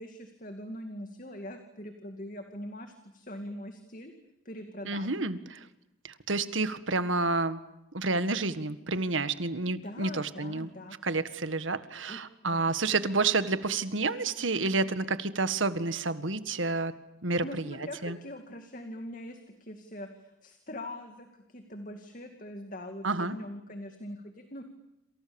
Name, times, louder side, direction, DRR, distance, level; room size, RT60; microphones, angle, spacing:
voice 1, 0.0-4.1 4.4-5.1 9.7-11.0 12.1-12.2 12.5-12.6 17.4-24.6, left 1 dB, 40° left, 6 dB, 2.3 m, -42 dB
voice 2, 4.8-5.7 6.0-7.6 7.9-10.7 11.0-16.9 17.2-17.8 18.0-18.2 23.0-23.4, right 3 dB, 80° right, 12 dB, 1.8 m, -29 dB
28.0 x 28.0 x 7.1 m, 0.89 s
head